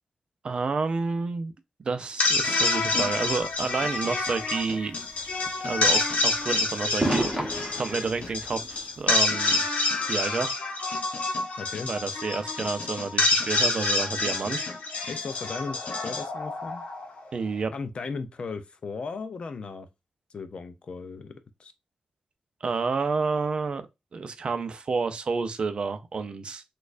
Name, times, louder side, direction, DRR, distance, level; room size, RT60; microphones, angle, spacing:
voice 1, 0.4-1.5 1.8-4.9 5.6-7.5 7.8-9.6 10.1-10.5 11.8-14.6 17.3-17.7 22.6-23.8 24.1-26.6, right 4 dB, 45° right, 0.4 m, -29 dB
sound 1, 2.0-17.3, left 3 dB, 70° left, 0.8 m, -27 dB
sound 2, 2.5-9.2, right 1 dB, 5° right, 1.0 m, -34 dB
voice 2, 11.6-11.9 15.0-16.8 17.7-19.9 20.3-21.7, left 4 dB, 50° left, 0.4 m, -36 dB
4.2 x 2.3 x 2.4 m
wide cardioid pair, 140°, 2 cm